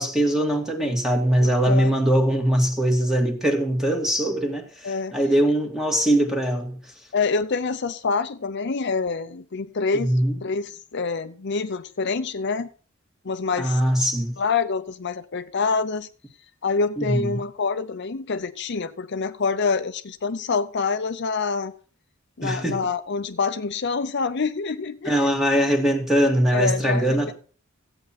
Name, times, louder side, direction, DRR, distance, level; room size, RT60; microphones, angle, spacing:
voice 1, 0.0-6.8 9.9-10.4 13.6-14.3 17.0-17.4 22.4-22.8 25.1-27.3, right 1 dB, ahead, 1.9 m, -21 dB
voice 2, 1.4-1.9 4.8-5.1 7.1-10.1 10.4-12.7 13.2-13.8 14.4-16.1 16.6-21.7 22.4-25.2 26.5-27.3, left 4 dB, 55° left, 0.7 m, -26 dB
14.0 x 8.8 x 4.2 m
head